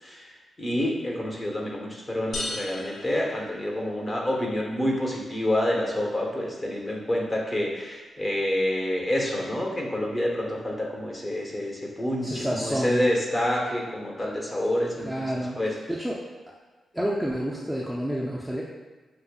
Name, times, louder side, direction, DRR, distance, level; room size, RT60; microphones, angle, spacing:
voice 1, 0.0-0.3 0.6-15.7, left 1 dB, 30° left, -1 dB, 1.1 m, -28 dB
sound 1, 2.3-4.2, left 2 dB, 60° left, 0.6 m, -36 dB
voice 2, 12.2-13.0 15.0-15.6 15.9-16.2 16.9-18.6, equal, ahead, -5 dB, 0.6 m, -29 dB
6.4 x 2.3 x 2.3 m, 1.3 s
supercardioid pair, 55°, 0 cm